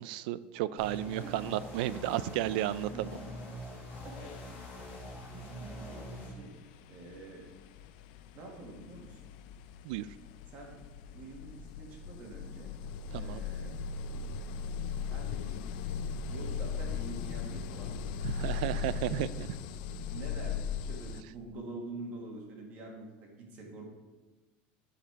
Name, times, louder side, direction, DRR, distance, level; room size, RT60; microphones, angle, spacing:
voice 1, 0.0-3.1 9.8-10.1 13.1-13.4 18.2-19.5, right 13 dB, 75° right, 17 dB, 0.4 m, -33 dB
sound 1, 0.8-6.3, equal, 40° left, 3.4 m, -44 dB
voice 2, 1.1-1.5 2.7-3.3 4.0-4.4 4.7-6.5 6.9-7.4 8.3-9.2 10.5-10.8 11.1-12.7 13.1-13.8 15.1-15.6 16.2-18.3 20.1-23.9, right 2 dB, 40° right, 0 dB, 2.1 m, -46 dB
sound 2, 3.4-3.6 3.9-21.2, left 6 dB, 70° left, 0.5 m, -39 dB
12.5 x 4.9 x 4.6 m, 1.2 s
cardioid pair, 170°, 5 cm